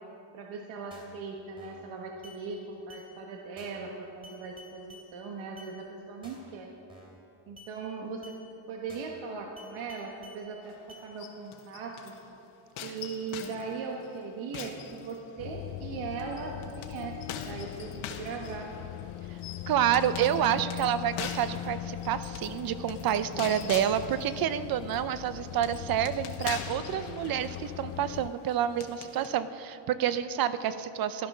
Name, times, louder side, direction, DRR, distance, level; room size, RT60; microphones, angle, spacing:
voice 1, 0.3-6.7 7.5-8.4 8.7-12.1 12.8-18.7, right 5 dB, 75° right, 1 dB, 1.4 m, -39 dB
sound 1, 0.9-1.2 1.6-1.9 2.2-2.4 2.9-3.1 3.6-3.9 4.2-5.1 5.6-5.7 6.2-6.5 6.9-7.2 7.6-7.7 8.2-8.4 8.9-9.2 9.6-10.4 10.9-11.1, left 1 dB, 10° right, 2.7 m, -52 dB
sound 2, 10.6-12.2 12.8-15.6 16.2-29.3, left 8 dB, 85° left, 1.4 m, -44 dB
sound 3, 15.4-28.3, left 14 dB, 65° left, 0.5 m, -40 dB
voice 2, 19.7-31.3, right 10 dB, 50° right, 13 dB, 0.6 m, -28 dB
15.0 x 12.5 x 6.0 m, 2.9 s
cardioid pair, 175°, 47 cm